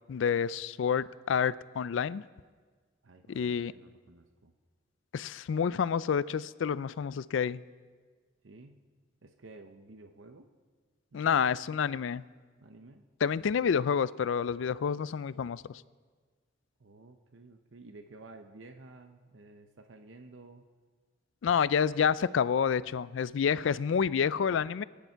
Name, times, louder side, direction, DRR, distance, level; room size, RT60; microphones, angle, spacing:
voice 1, 0.1-2.2 3.3-3.7 5.1-7.6 11.1-12.2 13.2-15.8 21.4-24.8, left 7 dB, 70° left, 18 dB, 0.4 m, -28 dB
voice 2, 3.0-4.5 8.4-8.8 9.2-10.5 11.1-11.4 12.6-13.1 13.6-13.7 16.8-20.6, right 2 dB, 70° right, 6 dB, 0.8 m, -53 dB
23.0 x 10.5 x 4.5 m, 1.5 s
head